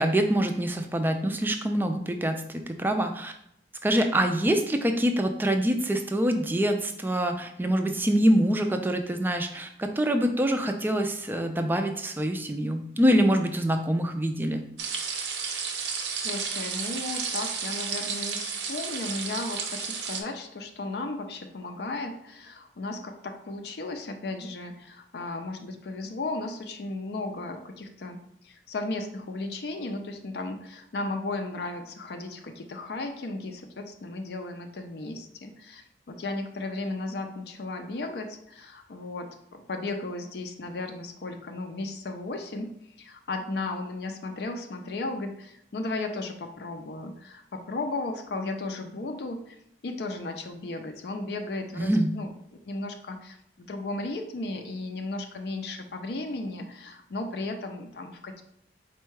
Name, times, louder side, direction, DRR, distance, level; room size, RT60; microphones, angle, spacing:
voice 1, 0.0-3.3 3.8-14.7 51.8-52.2, right 1 dB, 10° right, 6 dB, 0.3 m, -25 dB
sound 1, 14.8-20.2, right 6 dB, 75° right, 0.6 m, -32 dB
voice 2, 16.2-42.7 43.0-49.6 49.8-52.3 52.7-58.4, left 2 dB, 60° left, 5 dB, 0.4 m, -35 dB
4.4 x 2.2 x 4.6 m, 0.75 s
head